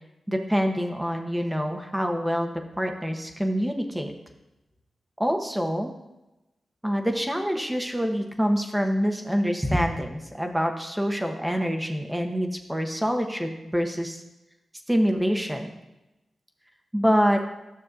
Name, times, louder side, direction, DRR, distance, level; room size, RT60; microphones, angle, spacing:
voice 1, 0.3-4.1 5.2-5.9 6.8-14.2 14.9-15.7 16.9-17.4, equal, 10° right, 4 dB, 1.1 m, -26 dB
12.0 x 6.4 x 2.6 m, 0.98 s
cardioid pair, 50°, 0 cm